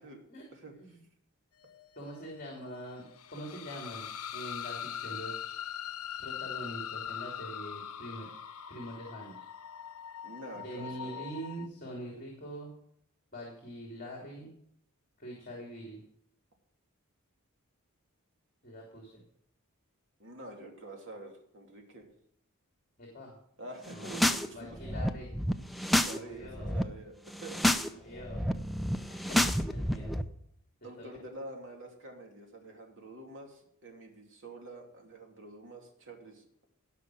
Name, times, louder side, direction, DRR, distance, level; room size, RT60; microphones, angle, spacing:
voice 1, 0.5-1.0 10.2-11.3 20.2-22.1 23.6-24.8 25.7-27.6 30.8-36.5, right 2 dB, 60° right, 1 dB, 2.9 m, -47 dB
sound 1, 1.6-11.7, left 9 dB, 85° left, 0.8 m, -42 dB
voice 2, 2.0-4.1 4.3-5.5 6.2-8.3 8.7-9.4 10.5-12.7 13.3-14.5 15.2-16.0 18.6-19.2 23.0-23.3 23.9-24.2 24.5-25.3 26.1-26.8 27.5-28.5 29.3-29.4 29.7-30.1 31.0-31.1, equal, 40° left, -1 dB, 3.0 m, -44 dB
sound 2, 23.9-24.5 24.7-26.2 26.4-26.8 27.3-27.9 28.2-30.2, left 1 dB, ahead, 0.6 m, -29 dB
17.5 x 6.0 x 6.3 m, 0.69 s
head